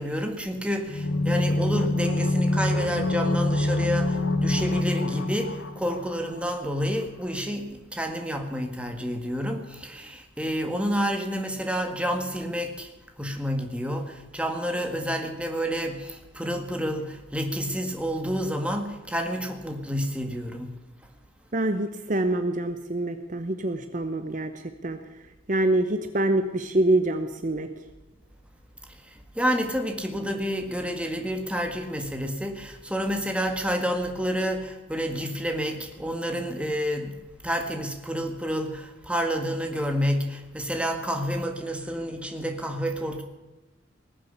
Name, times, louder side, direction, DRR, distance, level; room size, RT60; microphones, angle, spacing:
voice 1, 0.0-12.9 13.2-20.8 28.9-43.2, equal, 5° right, 1.7 m, -29 dB
sound 1, 0.9-6.6 6.8-6.9, left 2 dB, 70° left, 1.1 m, -25 dB
voice 2, 21.5-25.0 25.5-27.7, right 1 dB, 40° right, 0.9 m, -25 dB
19.5 x 7.6 x 9.6 m
head